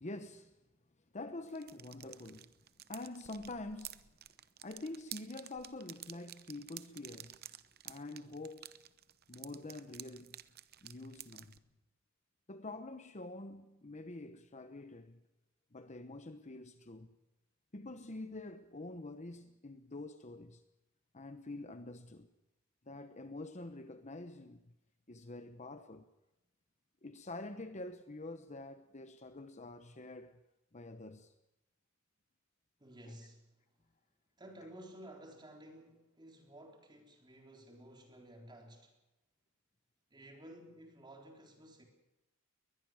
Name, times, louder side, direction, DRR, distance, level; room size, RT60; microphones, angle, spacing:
voice 1, 0.0-0.5 1.1-2.5 2.9-4.2 4.6-7.5 7.8-8.8 9.3-10.4 10.8-11.6 12.5-15.2 15.7-17.2 17.7-20.6 21.1-22.3 22.9-24.7 25.1-26.1 27.0-30.4 30.7-31.3, left 2 dB, 35° left, 1.0 m, -46 dB
sound 1, 1.5-11.6, right 13 dB, 50° right, 0.8 m, -51 dB
voice 2, 32.8-33.4 34.4-38.9 40.1-41.8, right 1 dB, 20° right, 3.9 m, -54 dB
22.0 x 20.0 x 6.3 m
head